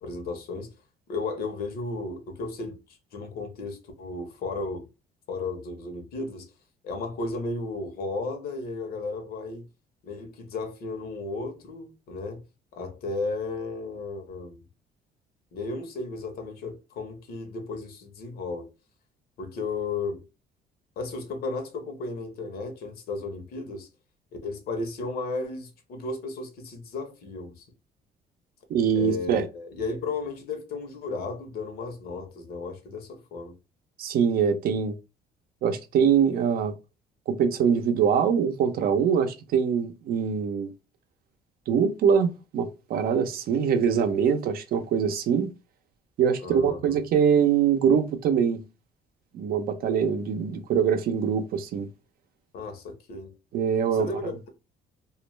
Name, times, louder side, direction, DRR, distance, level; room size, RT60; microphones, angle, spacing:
voice 1, 0.0-0.7 1.1-4.9 5.3-6.5 6.8-9.6 10.0-12.4 12.7-14.6 15.5-18.7 19.4-20.3 21.0-23.9 24.4-27.7 28.9-33.6 46.4-47.0 52.5-53.4 54.0-54.5, left 3 dB, 65° left, 0.9 m, -34 dB
voice 2, 28.7-29.5 34.0-34.9 35.6-36.7 37.3-40.7 41.7-45.5 46.2-48.6 49.3-51.9 53.5-54.1, right 7 dB, 60° right, 0.6 m, -23 dB
2.4 x 2.1 x 3.0 m
cardioid pair, 110°, 17 cm